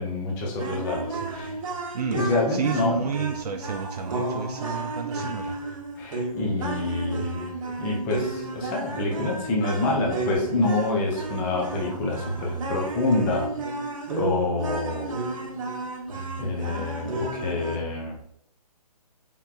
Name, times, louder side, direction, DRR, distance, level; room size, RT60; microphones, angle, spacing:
voice 1, 0.0-1.6 2.1-3.1 6.0-7.5 7.8-13.5 14.1-15.1 16.4-18.2, left 2 dB, 10° left, -2 dB, 0.4 m, -27 dB
sound 1, 0.6-17.8, right 3 dB, 55° right, 0.9 m, -32 dB
voice 2, 2.5-5.6, right 6 dB, 75° right, 4 dB, 0.5 m, -31 dB
4.3 x 3.6 x 2.3 m, 0.71 s
hypercardioid pair, 150°, 20 cm